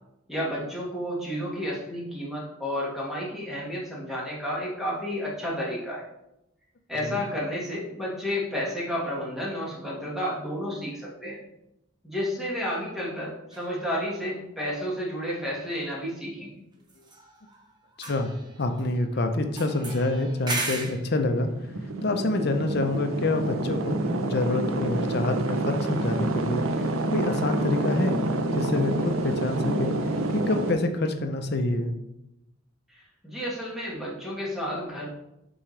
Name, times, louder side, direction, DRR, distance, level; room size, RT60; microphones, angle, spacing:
voice 1, 0.3-6.0 6.9-11.4 12.0-16.6 32.9-35.1, equal, ahead, -5 dB, 1.5 m, -31 dB
sound 1, 13.5-13.7 16.9-17.7 17.9-19.0 19.6-21.1, right 2 dB, 20° right, 0.9 m, -35 dB
voice 2, 18.0-18.3 18.6-21.5 22.0-26.6 27.1-28.2 28.5-29.9 30.3-31.9, left 2 dB, 50° left, 6 dB, 0.6 m, -27 dB
sound 2, 21.3-30.7, right 2 dB, 85° right, 0.6 m, -28 dB
6.2 x 4.7 x 3.2 m, 0.87 s
head